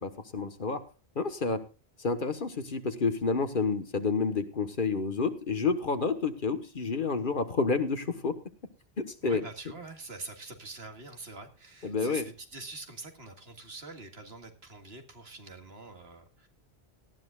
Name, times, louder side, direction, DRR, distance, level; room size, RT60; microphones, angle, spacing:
voice 1, 0.0-0.8 1.1-1.6 2.0-8.4 9.0-9.4 11.8-12.3, left 4 dB, 55° left, 9 dB, 1.4 m, -29 dB
voice 2, 9.2-16.5, right 3 dB, 75° right, 5 dB, 2.1 m, -45 dB
18.5 x 13.0 x 2.4 m, 0.31 s
omnidirectional pair, 1.1 m